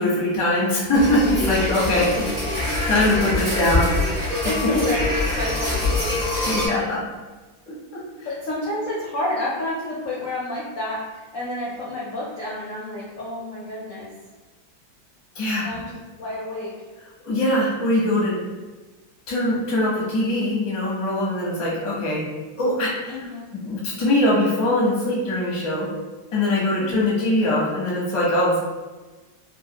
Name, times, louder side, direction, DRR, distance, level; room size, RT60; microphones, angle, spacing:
voice 1, 0.0-2.1 2.5-3.9 6.5-7.0 15.3-15.7 17.2-18.4 19.3-22.2 22.6-23.1 23.6-25.9 26.3-28.6, left 1 dB, 35° left, -6 dB, 0.5 m, -22 dB
sound 1, 0.9-6.7, left 2 dB, 15° right, 0.7 m, -24 dB
voice 2, 1.6-2.0 4.4-6.2 8.2-14.1 15.6-16.7 23.1-23.5 26.8-27.1, left 1 dB, 70° left, -6 dB, 0.7 m, -30 dB
3.1 x 2.6 x 2.8 m, 1.3 s
omnidirectional pair, 2.1 m